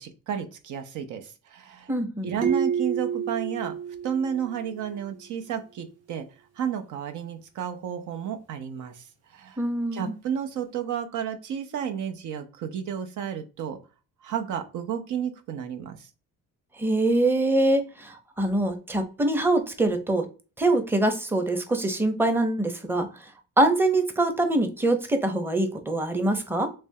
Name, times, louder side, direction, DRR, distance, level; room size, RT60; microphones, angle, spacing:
voice 1, 0.0-1.9 2.2-3.8 4.0-6.3 6.6-9.1 9.3-9.6 9.9-13.8 14.2-16.1, right 8 dB, 75° right, 7 dB, 0.7 m, -32 dB
voice 2, 1.9-2.3 9.6-10.1 16.8-20.3 20.6-23.1 23.6-26.7, right 2 dB, 5° right, 6 dB, 0.7 m, -24 dB
sound 1, 2.4-5.0, right 8 dB, 55° right, 0.9 m, -29 dB
3.4 x 3.2 x 2.7 m, 0.34 s
cardioid pair, 90°, 30 cm